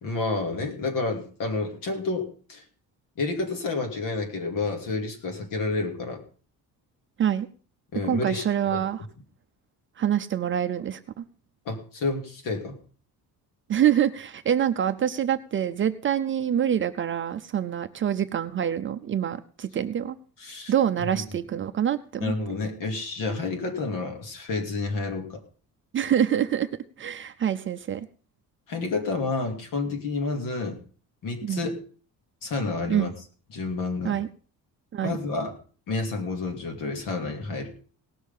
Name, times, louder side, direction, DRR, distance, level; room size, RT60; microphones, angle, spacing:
voice 1, 0.0-2.6 3.2-6.2 7.9-8.5 8.7-8.8 11.6-12.8 20.4-20.7 21.0-21.2 22.2-25.4 28.7-30.8 31.2-31.8 32.4-33.1 33.5-34.1 35.0-35.5 35.9-37.7, left 3 dB, 60° left, 5 dB, 2.8 m, -29 dB
voice 2, 8.1-9.1 10.0-11.2 13.7-20.2 20.7-22.3 25.9-26.7 27.0-28.1 31.4-31.6 32.9-33.1 34.0-34.3 34.9-35.2, right 9 dB, 35° right, 9 dB, 0.6 m, -26 dB
18.5 x 6.5 x 5.4 m, 0.40 s
cardioid pair, 180°, 36 cm